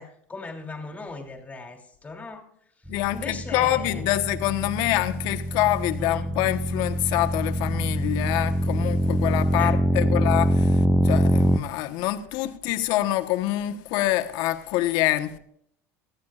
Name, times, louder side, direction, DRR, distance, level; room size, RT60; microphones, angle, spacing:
voice 1, 0.0-2.5 3.1-4.0 6.0-6.3 9.6-9.8, left 3 dB, 20° left, 2.9 m, -38 dB
voice 2, 2.9-15.4, left 15 dB, 65° left, 1.2 m, -26 dB
sound 1, 2.9-11.6, right 1 dB, ahead, 0.7 m, -24 dB
19.5 x 14.0 x 2.5 m
supercardioid pair, 95°, 8 cm